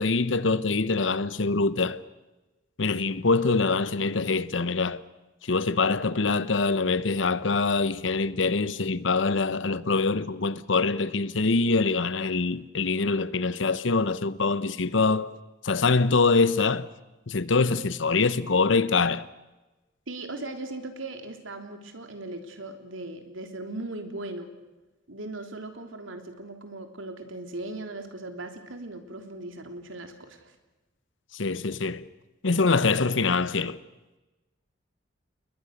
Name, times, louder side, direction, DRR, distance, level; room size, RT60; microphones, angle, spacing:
voice 1, 0.0-2.0 2.8-5.0 5.5-15.3 15.6-16.9 17.3-19.3 31.3-32.0 32.4-33.8, left 4 dB, 70° left, 0.9 m, -24 dB
voice 2, 20.1-24.5 25.1-30.5, right 2 dB, 85° right, 3.3 m, -38 dB
29.5 x 21.5 x 6.6 m
head